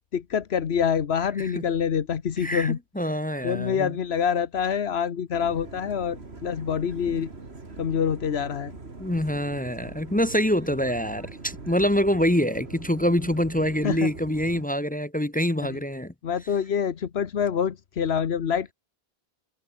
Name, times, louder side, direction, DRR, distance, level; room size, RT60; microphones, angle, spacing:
voice 1, 0.1-3.1 3.4-7.3 7.8-8.8 13.8-14.1 15.7-15.8 16.2-18.7, left 7 dB, 90° left, 1.3 m, -26 dB
voice 2, 2.4-3.9 9.0-16.1, equal, 10° left, 0.4 m, -25 dB
sound 1, 5.3-14.6, right 3 dB, 85° right, 3.1 m, -42 dB
omnidirectional pair, 1.0 m